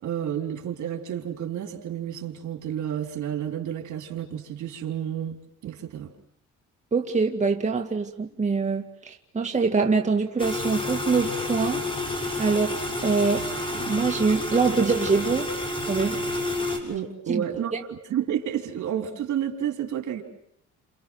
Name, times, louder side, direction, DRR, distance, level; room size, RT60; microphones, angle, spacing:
voice 1, 0.0-5.4 5.6-6.1 16.8-20.2, right 10 dB, 70° right, 4.0 m, -30 dB
voice 2, 6.9-11.8 12.4-12.8 13.0-13.5 13.7-15.5 15.9-16.2 17.3-17.4, right 4 dB, 25° right, 2.2 m, -24 dB
sound 1, 10.4-16.8, left 2 dB, 15° left, 6.8 m, -29 dB
29.5 x 28.5 x 6.3 m
cardioid pair, 90°, 30 cm